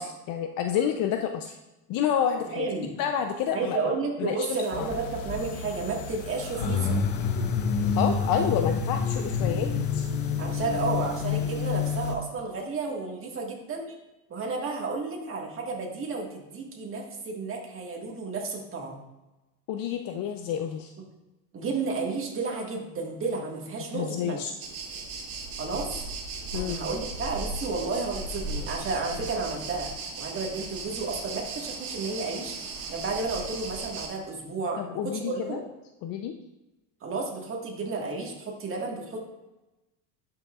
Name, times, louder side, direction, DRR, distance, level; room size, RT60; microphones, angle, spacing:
voice 1, 0.0-1.6 1.9-2.7 3.0-3.8 4.2-4.5 4.8-4.9 8.0-10.1 19.7-20.9 23.9-24.5 26.5-26.8 34.8-35.6 36.0-36.4, left 8 dB, 50° left, 5 dB, 0.6 m, -29 dB
voice 2, 2.3-3.0 3.5-7.0 10.4-14.0 14.3-19.0 21.5-24.4 25.6-26.1 26.5-29.9 30.2-35.6 37.0-39.2, right 3 dB, 30° right, -1 dB, 1.7 m, -32 dB
sound 1, 4.7-12.1, left 5 dB, 80° left, 1.1 m, -28 dB
sound 2, 24.6-34.1, right 3 dB, 55° right, 1.6 m, -37 dB
11.0 x 5.9 x 2.4 m, 1.0 s
cardioid pair, 130°, 43 cm